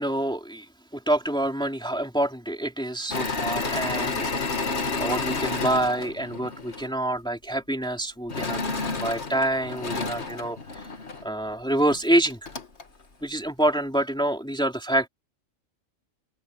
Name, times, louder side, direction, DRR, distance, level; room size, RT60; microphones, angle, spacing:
voice 1, 0.0-4.3 4.7-8.6 8.9-10.9 11.2-12.5 13.2-15.1, right 1 dB, 5° left, 3.1 m, -27 dB
Engine / Mechanisms, 3.1-6.9 8.3-11.2 11.9-12.0 12.2-12.8, left 3 dB, 55° left, 2.1 m, -30 dB
open air
omnidirectional pair, 1.4 m